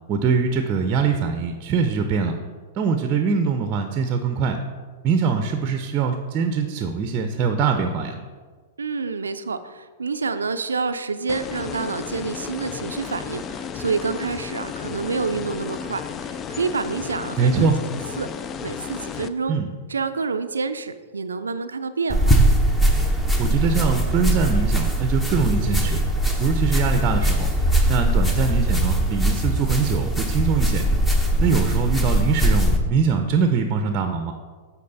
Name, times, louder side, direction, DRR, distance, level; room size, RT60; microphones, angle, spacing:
voice 1, 0.1-2.3 2.8-4.6 5.0-8.2 17.4-17.8 19.5-19.7 23.4-26.0 26.4-27.5 27.9-30.8 31.4-34.3, right 5 dB, 35° right, 6 dB, 0.6 m, -22 dB
voice 2, 8.8-17.7 18.2-18.3 18.6-19.6 19.9-22.4, right 4 dB, 90° right, 10 dB, 0.4 m, -28 dB
sound 1, 11.3-19.3, left 7 dB, 30° left, 0.4 m, -33 dB
sound 2, 22.1-32.8, right 1 dB, 10° left, 1.0 m, -21 dB
8.5 x 4.6 x 4.0 m, 1.5 s
hypercardioid pair, 110°, 0 cm